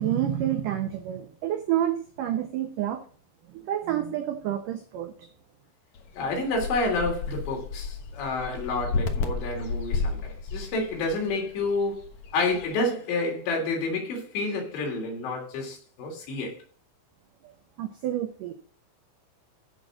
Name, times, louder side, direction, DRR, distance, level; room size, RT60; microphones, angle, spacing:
voice 1, 0.0-3.0 3.5-5.3 17.8-18.5, right 11 dB, 75° right, 2.0 m, -29 dB
sound 1, 6.0-12.7, left 4 dB, 65° left, 1.9 m, -33 dB
voice 2, 6.1-12.1 12.3-16.6, left 2 dB, 85° left, 5.4 m, -29 dB
15.5 x 6.2 x 3.8 m
omnidirectional pair, 4.9 m